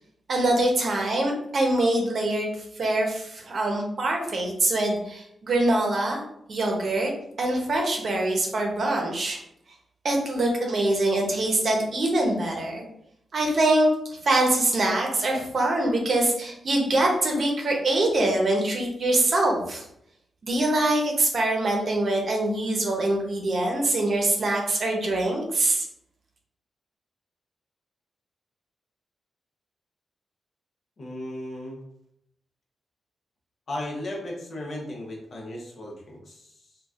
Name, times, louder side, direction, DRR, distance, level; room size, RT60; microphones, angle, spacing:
voice 1, 0.3-2.5 2.8-6.2 6.5-7.1 7.4-9.4 10.0-12.8 13.3-19.9 20.4-25.9, right 1 dB, 50° right, 1 dB, 0.8 m, -24 dB
voice 2, 31.0-31.8 33.7-36.8, left 1 dB, 55° left, -2 dB, 0.9 m, -36 dB
4.0 x 2.3 x 2.4 m, 0.75 s
wide cardioid pair, 120°, 0 cm